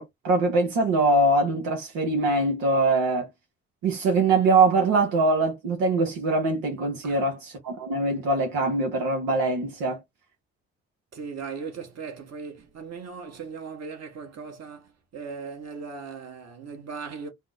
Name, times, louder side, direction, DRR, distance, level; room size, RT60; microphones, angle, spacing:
voice 1, 0.0-3.3 3.8-10.0, right 2 dB, 75° right, 0.9 m, -23 dB
voice 2, 7.0-7.4 11.1-17.3, right 5 dB, 45° right, 1.3 m, -38 dB
3.4 x 2.0 x 3.4 m
hypercardioid pair, 40°, 35 cm